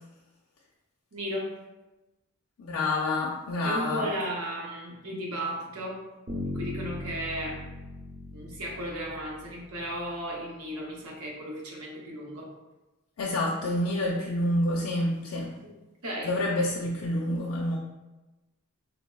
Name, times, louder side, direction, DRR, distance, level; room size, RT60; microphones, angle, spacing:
voice 1, 1.1-1.6 3.6-6.0 6.4-7.7 8.3-12.5 15.6-15.7 16.0-16.3, equal, 85° right, -2 dB, 0.8 m, -35 dB
voice 2, 2.6-4.1 13.2-15.5 16.2-17.8, left 1 dB, 70° left, -4 dB, 0.4 m, -28 dB
Bass guitar, 6.3-10.2, left 1 dB, 40° right, 0.7 m, -39 dB
3.9 x 2.0 x 2.2 m, 1.1 s
head